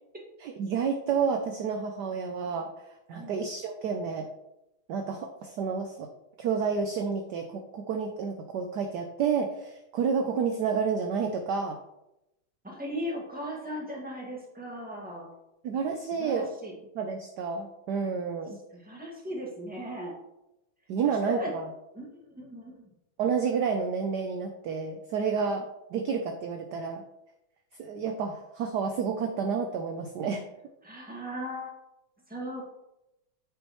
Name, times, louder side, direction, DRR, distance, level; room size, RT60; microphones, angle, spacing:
voice 1, 0.4-2.7 3.1-4.3 4.9-6.1 6.4-11.8 15.6-16.5 16.9-18.6 20.9-21.7 23.2-25.6 25.9-27.0 27.8-30.4, right 6 dB, 70° right, 5 dB, 1.0 m, -30 dB
voice 2, 12.6-15.3 16.2-16.7 18.7-20.2 21.0-21.5 21.9-22.9 30.8-31.7 32.3-32.6, equal, 5° right, -2 dB, 1.6 m, -37 dB
8.4 x 6.4 x 3.0 m, 0.88 s
omnidirectional pair, 2.4 m